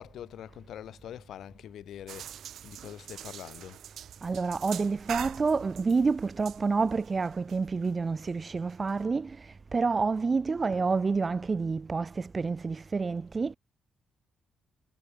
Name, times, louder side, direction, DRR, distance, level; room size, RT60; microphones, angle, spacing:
voice 1, 0.0-2.4 2.6-3.8, left 11 dB, 70° left, 5.8 m, -44 dB
sound 1, 2.1-9.1, right 10 dB, 70° right, 1.9 m, -44 dB
voice 2, 4.2-13.6, right 4 dB, 30° right, 2.4 m, -28 dB
cardioid pair, 90°, 0 cm